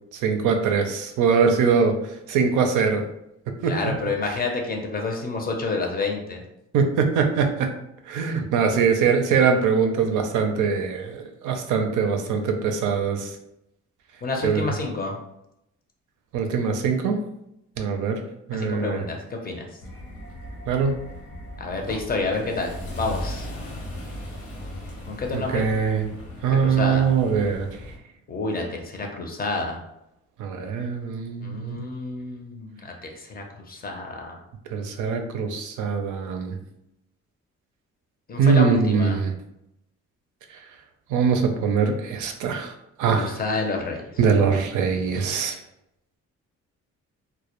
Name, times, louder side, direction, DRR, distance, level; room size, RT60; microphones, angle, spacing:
voice 1, 0.1-2.0 2.3-3.0 3.6-4.0 4.2-4.4 6.7-7.7 8.1-13.4 14.4-14.8 16.3-17.2 17.8-18.2 18.5-19.1 20.7-21.0 25.3-26.1 26.4-27.7 30.4-31.9 34.7-36.6 38.4-39.3 41.1-42.7 43.0-43.4 44.2-45.6, right 6 dB, 80° right, 5 dB, 0.5 m, -22 dB
voice 2, 3.7-6.4 14.2-15.1 18.5-19.7 21.6-23.5 25.1-25.6 26.6-27.1 28.3-29.8 31.4-34.4 38.3-39.2 43.1-44.0, left 3 dB, 30° left, 1 dB, 0.5 m, -29 dB
sound 1, 19.8-28.0, left 1 dB, 70° left, 0.9 m, -37 dB
2.1 x 2.1 x 2.9 m, 0.83 s
cardioid pair, 90°, 30 cm